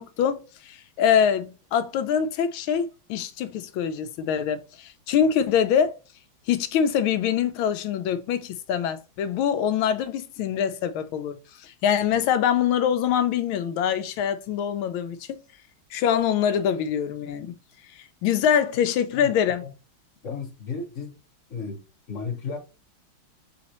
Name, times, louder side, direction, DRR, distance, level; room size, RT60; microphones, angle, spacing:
voice 1, 0.0-5.9 6.5-15.4 15.9-17.5 17.9-19.6, left 8 dB, 85° left, 1.4 m, -24 dB
voice 2, 20.2-21.2 21.5-22.6, left 5 dB, 45° left, 1.2 m, -34 dB
4.2 x 4.1 x 2.9 m
omnidirectional pair, 2.3 m